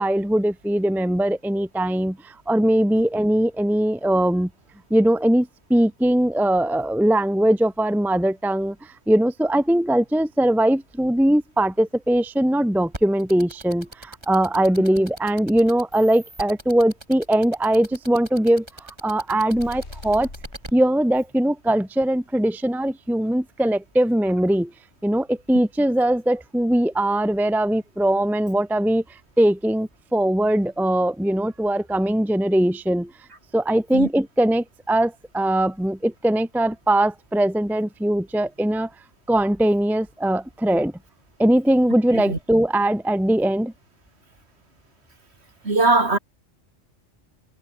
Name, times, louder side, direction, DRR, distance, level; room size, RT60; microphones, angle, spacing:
voice 1, 0.0-4.5 4.9-20.3 20.7-24.7 25.0-29.0 29.4-33.1 33.5-38.9 39.3-40.9 41.4-43.7, right 1 dB, ahead, 0.8 m, -21 dB
sound 1, 12.9-20.7, right 1 dB, 20° right, 3.8 m, -39 dB
sound 2, 19.5-20.7, left 2 dB, 60° left, 4.7 m, -40 dB
voice 2, 45.6-46.2, right 3 dB, 55° right, 3.5 m, -20 dB
omnidirectional pair, 1.3 m